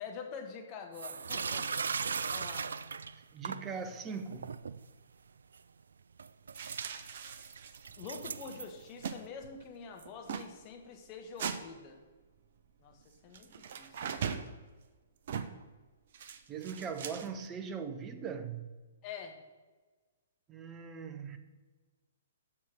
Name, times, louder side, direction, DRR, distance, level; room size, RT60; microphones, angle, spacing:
voice 1, 0.0-1.7 2.3-2.7 8.0-12.0 12.8-14.3 19.0-19.4, left 5 dB, 30° left, 1.4 m, -46 dB
sound 1, 0.9-3.7 4.2-4.8 5.5-5.6 6.2-9.2, right 5 dB, 65° right, 0.3 m, -38 dB
voice 2, 3.3-4.6 16.5-18.7 20.5-21.4, right 6 dB, 20° right, 0.8 m, -40 dB
sound 2, 6.5-7.9 8.2-8.3 8.5-9.2 9.4-9.7 10.0-10.5 11.4-11.6 13.3-14.5 15.3-15.6 16.1-17.5, right 7 dB, 50° right, 0.7 m, -40 dB
7.5 x 6.4 x 6.1 m
figure-of-eight pair, 120°, 0 cm